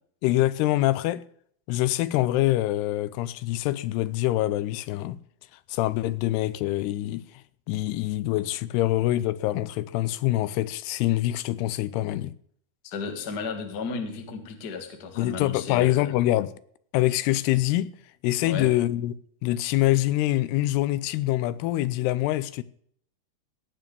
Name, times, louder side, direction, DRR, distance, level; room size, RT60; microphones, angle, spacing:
voice 1, 0.2-1.2 1.7-5.2 5.7-7.2 7.7-12.3 15.2-16.5 16.9-17.9 18.2-19.1 19.4-22.6, left 16 dB, 90° left, 2.7 m, -25 dB
voice 2, 12.8-16.1 18.4-18.7, left 5 dB, 50° left, 1.2 m, -34 dB
18.0 x 6.0 x 6.9 m
omnidirectional pair, 4.6 m